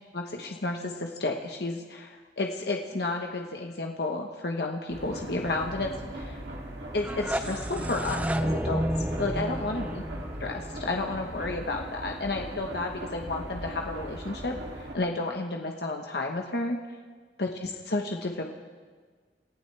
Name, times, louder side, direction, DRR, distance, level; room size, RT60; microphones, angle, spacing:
voice 1, 0.1-6.4 6.9-8.8 9.2-10.0 10.4-16.8 17.4-18.5, left 2 dB, 65° left, 2 dB, 1.2 m, -32 dB
sound 1, 4.9-15.0, right 1 dB, 85° right, 2.7 m, -39 dB
sound 2, 6.9-11.8, right 1 dB, 10° right, 0.4 m, -32 dB
28.5 x 15.0 x 3.4 m, 1.5 s
head